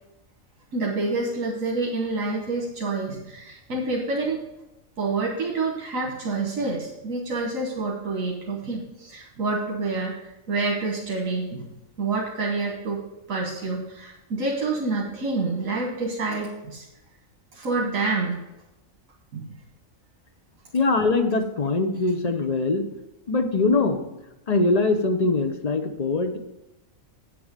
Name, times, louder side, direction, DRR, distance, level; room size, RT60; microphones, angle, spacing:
voice 1, 0.7-4.4 5.0-11.7 12.0-13.0 13.3-16.8 17.5-18.4 19.3-19.6, right 3 dB, 85° right, -1 dB, 1.6 m, -28 dB
voice 2, 20.7-22.8 23.3-24.0 24.5-26.4, left 3 dB, 35° left, 6 dB, 0.8 m, -22 dB
8.6 x 7.0 x 5.1 m, 0.93 s
omnidirectional pair, 1.4 m